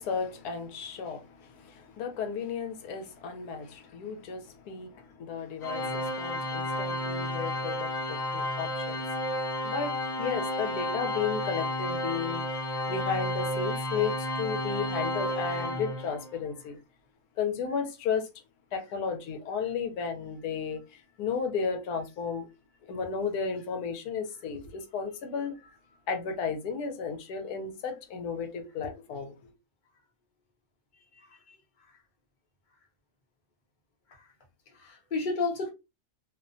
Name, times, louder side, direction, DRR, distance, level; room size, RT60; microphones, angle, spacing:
voice 1, 0.0-9.0 9.6-12.4 12.9-16.8 17.4-18.3 18.7-22.5 22.9-25.6 26.1-29.5, left 6 dB, 80° left, 1.2 m, -34 dB
Organ, 5.6-16.4, left 1 dB, 55° left, 1.2 m, -32 dB
voice 2, 31.2-31.6 34.2-34.3 34.7-35.7, left 3 dB, 40° left, 0.8 m, -32 dB
2.8 x 2.1 x 2.5 m
omnidirectional pair, 1.6 m